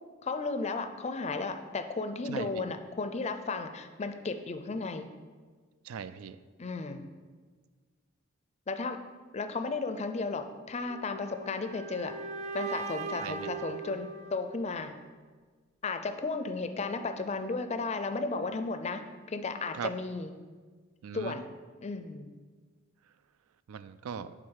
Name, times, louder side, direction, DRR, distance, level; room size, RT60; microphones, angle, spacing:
voice 1, 0.2-5.1 6.6-7.1 8.7-9.0 9.3-12.1 12.5-14.9 15.8-19.0 19.3-20.3 21.1-21.5 21.8-22.3, left 3 dB, 30° left, 8 dB, 0.4 m, -34 dB
voice 2, 2.3-2.6 5.8-6.4 13.2-13.5 19.7-19.9 21.0-21.4 23.7-24.3, right 7 dB, 85° right, 14 dB, 0.4 m, -39 dB
sound 1, 10.9-14.9, right 4 dB, 30° right, 0.6 m, -39 dB
7.6 x 3.8 x 6.4 m, 1.5 s
head